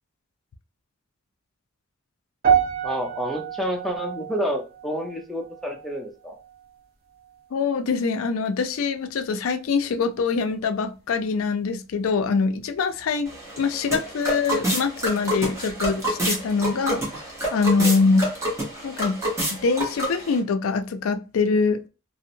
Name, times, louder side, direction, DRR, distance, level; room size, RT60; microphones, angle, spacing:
sound 1, 2.4-6.8 7.1-7.5 8.1-8.2, right 8 dB, 50° right, 0.8 m, -28 dB
voice 1, 2.8-6.4 14.3-14.4 17.8-18.0 19.0-19.1, equal, ahead, 0.5 m, -29 dB
voice 2, 7.5-17.0 17.5-18.3 18.8-19.2 19.5-21.8, left 4 dB, 90° left, 0.4 m, -24 dB
sound 2, 13.3-20.4, right 1 dB, 15° right, 0.9 m, -28 dB
2.7 x 2.0 x 2.6 m
head